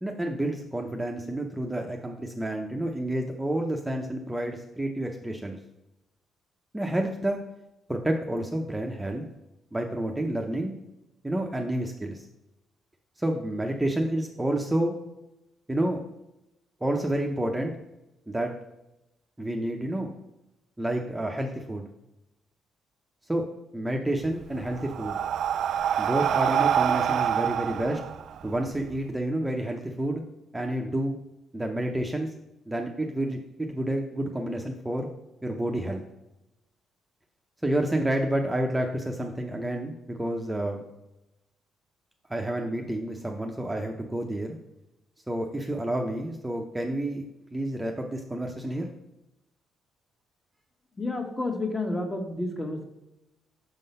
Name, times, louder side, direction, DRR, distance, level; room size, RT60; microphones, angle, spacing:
voice 1, 0.0-5.6 6.7-7.4 7.9-9.2 9.7-10.7 11.2-12.2 13.2-14.9 15.7-16.0 16.8-17.7 18.3-18.5 19.4-20.1 20.8-21.9 23.3-23.4 23.7-25.1 26.0-28.0 28.4-30.2 30.5-31.2 31.5-32.3 32.7-35.1 35.4-36.0 37.6-40.9 42.3-44.6 45.3-47.2 47.5-48.9, right 1 dB, 10° right, 2 dB, 0.7 m, -29 dB
Breathing, 24.2-29.0, right 9 dB, 70° right, 0.3 m, -26 dB
voice 2, 51.0-52.8, left 2 dB, 20° left, 3 dB, 1.3 m, -30 dB
6.3 x 3.8 x 5.4 m, 0.90 s
cardioid pair, 90°, 0 cm